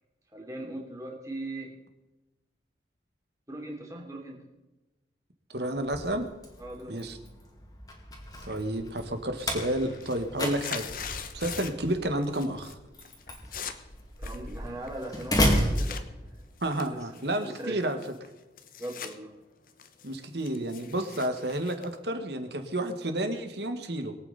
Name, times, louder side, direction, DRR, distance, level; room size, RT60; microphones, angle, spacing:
voice 1, 0.3-1.7 3.5-4.4 6.6-7.1 14.2-16.0 16.9-17.1 17.4-17.8 18.8-19.3, right 1 dB, 15° right, -1 dB, 3.1 m, -39 dB
voice 2, 5.5-6.3 6.9-7.2 8.5-12.8 16.6-18.0 20.0-24.2, right 1 dB, 70° right, 7 dB, 1.8 m, -31 dB
Slam, 5.8-16.7, equal, 20° left, 2.4 m, -33 dB
sound 1, 8.5-8.9 9.2-11.9 12.2-12.7 13.0-16.0 16.6-19.1 19.5-22.7, left 7 dB, 50° left, 1.1 m, -42 dB
23.0 x 8.9 x 4.2 m, 1.1 s
head